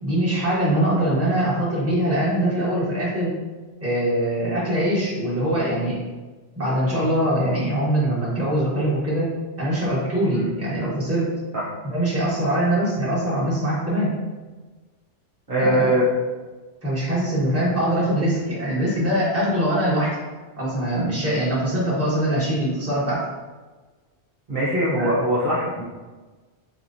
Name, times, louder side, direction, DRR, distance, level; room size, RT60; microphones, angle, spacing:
voice 1, 0.0-3.4 3.8-6.0 6.6-11.3 11.8-14.1 15.6-16.0 16.8-20.1 20.6-23.2 24.9-25.1, right 1 dB, 10° right, -8 dB, 1.2 m, -23 dB
voice 2, 15.5-16.0 24.5-25.8, right 1 dB, 45° right, -9 dB, 1.0 m, -21 dB
4.2 x 2.9 x 2.6 m, 1.3 s
omnidirectional pair, 1.2 m